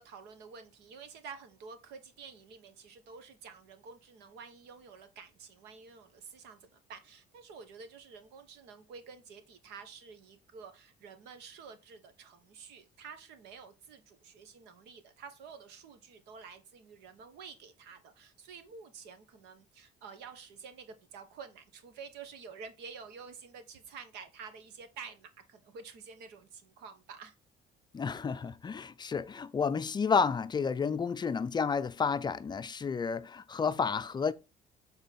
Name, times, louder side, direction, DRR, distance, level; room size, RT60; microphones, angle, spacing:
voice 1, 0.0-27.3, right 5 dB, 90° right, 1.2 m, -50 dB
voice 2, 27.9-34.3, left 5 dB, 25° left, 0.4 m, -31 dB
7.2 x 3.9 x 4.2 m
cardioid pair, 110°, 17 cm